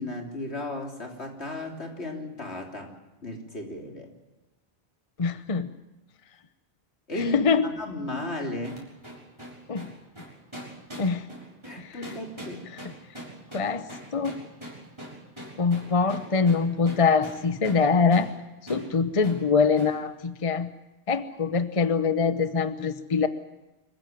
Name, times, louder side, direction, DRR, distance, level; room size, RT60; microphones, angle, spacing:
voice 1, 0.0-3.0 3.2-4.1 7.1-8.9 11.6-12.7, left 2 dB, 75° left, 2 dB, 3.8 m, -35 dB
voice 2, 5.2-5.7 7.3-7.7 9.7-9.9 11.0-11.3 11.8-12.0 13.5-13.9 14.1-14.4 15.6-18.3 18.7-20.7 21.1-23.3, left 5 dB, 35° left, 12 dB, 0.9 m, -23 dB
sound 1, 8.6-17.9 18.1-18.3 18.7-18.9 19.2-19.4 19.8-20.0, right 1 dB, 25° right, 6.4 m, -42 dB
25.5 x 15.5 x 9.3 m, 1.0 s
omnidirectional pair, 1.1 m